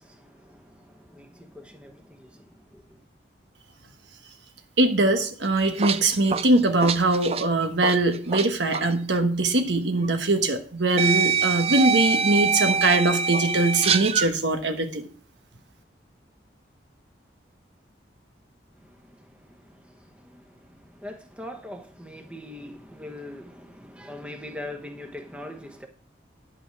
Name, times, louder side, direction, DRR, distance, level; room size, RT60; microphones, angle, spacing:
voice 1, 0.0-3.0 18.8-25.9, left 1 dB, 5° right, 1.1 m, -42 dB
voice 2, 4.8-15.0, right 2 dB, 80° right, 1.2 m, -22 dB
sound 1, 5.4-8.5 8.7-8.9 10.0-10.1 11.0-14.3, right 6 dB, 35° right, 0.4 m, -24 dB
10.5 x 8.0 x 4.6 m
head